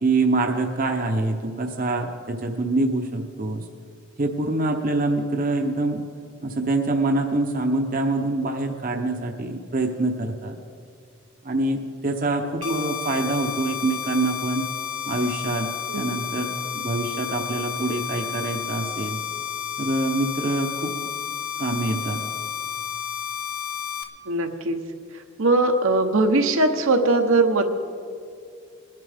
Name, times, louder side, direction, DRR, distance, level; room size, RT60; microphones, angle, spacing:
voice 1, 0.0-3.6 4.2-6.0 6.4-10.6 11.4-14.7 15.1-15.7 16.0-19.2 19.8-20.9 21.6-22.2, right 2 dB, 40° right, 3 dB, 0.8 m, -25 dB
sound 1, 12.6-24.0, left 8 dB, 90° left, 0.8 m, -31 dB
voice 2, 24.3-24.8 25.4-27.7, right 2 dB, 70° right, 5 dB, 0.9 m, -20 dB
21.0 x 11.0 x 3.5 m, 2.2 s
head